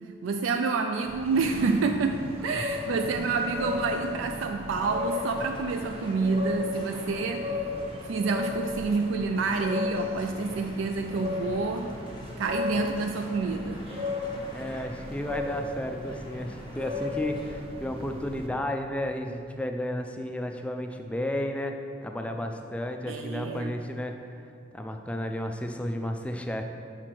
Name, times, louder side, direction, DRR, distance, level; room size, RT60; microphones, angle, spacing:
voice 1, 0.2-7.7 8.0-12.0 12.4-13.8 23.1-23.7, right 4 dB, 75° right, 5 dB, 0.3 m, -28 dB
sound 1, 1.0-18.5, left 3 dB, 30° right, 0.6 m, -35 dB
sound 2, 4.7-17.6, left 1 dB, 25° left, 0.8 m, -49 dB
voice 2, 14.2-21.7 22.0-24.2 24.7-26.6, left 1 dB, 5° left, 5 dB, 0.3 m, -33 dB
5.8 x 5.1 x 4.5 m, 2.4 s
head